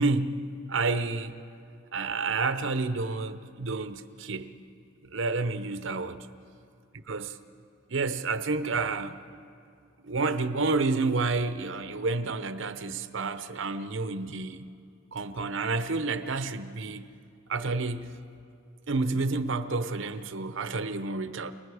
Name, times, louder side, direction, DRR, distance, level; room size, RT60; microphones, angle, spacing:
voice 1, 0.0-1.4 1.9-4.5 5.0-6.2 7.1-7.4 7.9-9.2 10.0-14.6 15.1-17.0 17.5-18.1 18.9-21.5, right 3 dB, 70° right, 0.8 m, -29 dB
28.0 x 19.5 x 4.9 m
head